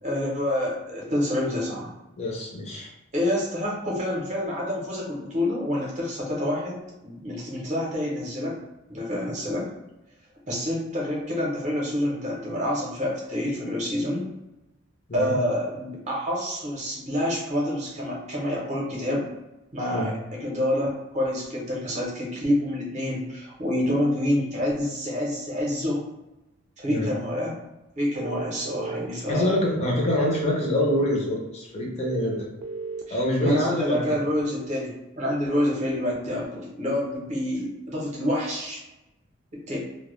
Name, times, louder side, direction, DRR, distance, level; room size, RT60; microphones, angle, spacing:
voice 1, 0.0-1.9 3.1-8.6 8.9-9.7 10.5-14.3 15.1-19.3 19.7-26.0 26.8-27.5 28.0-29.5 33.1-38.8 39.7-39.8, left 1 dB, 35° right, -3 dB, 0.6 m, -27 dB
voice 2, 2.2-2.9 15.1-15.3 19.9-20.1 26.9-27.1 29.3-32.4 33.1-34.2, left 1 dB, 30° left, -3 dB, 0.5 m, -25 dB
sound 1, 28.2-29.1 30.0-31.0 32.0-33.0, right 4 dB, 90° right, 0.3 m, -34 dB
2.1 x 2.0 x 3.0 m, 0.98 s
head